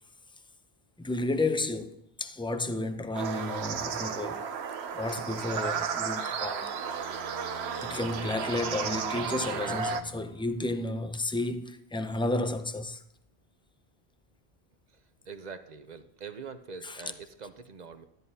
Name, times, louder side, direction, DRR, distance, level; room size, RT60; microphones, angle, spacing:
voice 1, 1.0-4.5 4.9-6.7 7.8-13.0 16.8-17.0, left 2 dB, 10° left, 0.3 m, -32 dB
sound 1, 3.1-10.0, right 6 dB, 85° right, 1.0 m, -33 dB
sound 2, 6.7-11.1, equal, 65° left, 0.9 m, -50 dB
voice 2, 15.3-18.0, right 5 dB, 45° right, 0.8 m, -44 dB
13.0 x 11.0 x 2.8 m
omnidirectional pair, 1.1 m